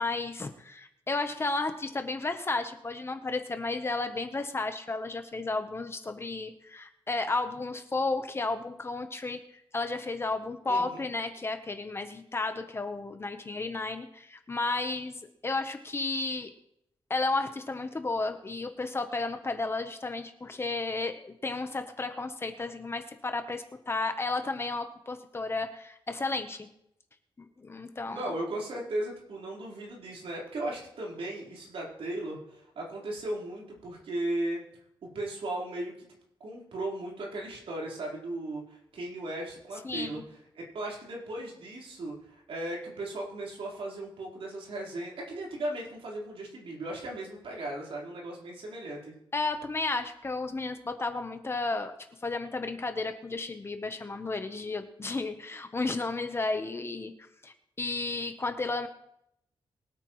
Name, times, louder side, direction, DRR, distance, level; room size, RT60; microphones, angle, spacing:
voice 1, 0.0-16.5 17.1-26.7 27.4-28.2 39.8-40.2 49.3-51.9 52.2-57.1 57.4-58.9, left 3 dB, 25° left, 7 dB, 0.9 m, -33 dB
voice 2, 10.7-11.0 28.1-34.6 35.1-36.1 36.4-40.2 40.7-49.1, right 1 dB, 80° right, -3 dB, 4.0 m, -36 dB
22.5 x 8.9 x 3.1 m, 0.76 s
wide cardioid pair, 140°, 9 cm